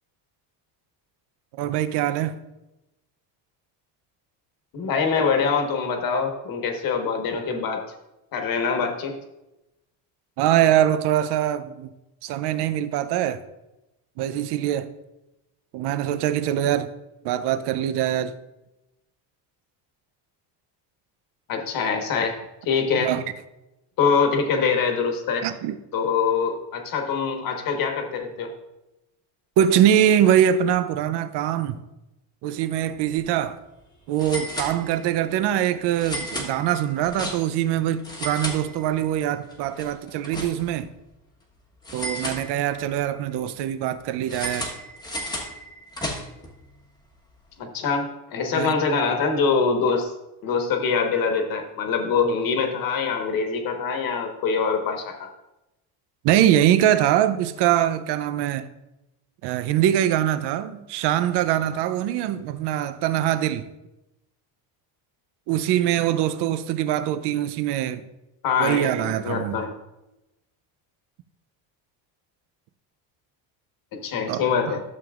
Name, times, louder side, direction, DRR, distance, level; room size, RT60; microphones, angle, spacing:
voice 1, 1.6-2.4 10.4-11.9 12.2-13.4 14.2-14.9 15.7-16.9 17.2-18.3 23.0-23.2 25.4-25.8 29.6-31.8 32.4-33.6 34.1-40.9 41.9-44.7 48.5-48.7 56.2-58.7 59.4-63.7 65.5-68.0 68.6-69.6 74.3-74.4 74.7-74.8, right 11 dB, 70° right, 0.7 m, -23 dB
voice 2, 4.7-7.8 8.3-9.1 21.5-22.4 22.6-23.1 24.0-25.5 25.9-28.5 47.6-50.1 50.4-55.3 68.4-69.7 74.0-74.8, left 5 dB, 50° left, 1.4 m, -24 dB
sound 1, 33.0-33.2 33.5-33.6 34.2-35.2 36.0-37.7 38.0-39.2 39.5-40.9 41.8-43.0 44.3-46.5, equal, 10° left, 1.2 m, -34 dB
12.5 x 7.2 x 2.4 m
cardioid pair, 150°, 43 cm